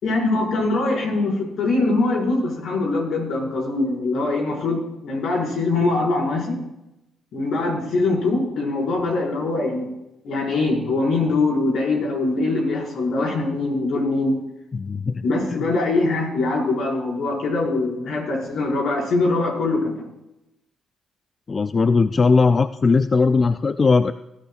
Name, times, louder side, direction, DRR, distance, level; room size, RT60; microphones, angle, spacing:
voice 1, 0.0-6.6 7.3-9.8 10.2-14.4 15.2-19.9, left 2 dB, 70° left, -2 dB, 5.5 m, -22 dB
voice 2, 14.7-15.2 15.5-15.6 21.5-24.1, left 4 dB, 35° left, 11 dB, 0.4 m, -18 dB
19.0 x 13.0 x 2.5 m, 0.89 s
cardioid pair, 90°, 0 cm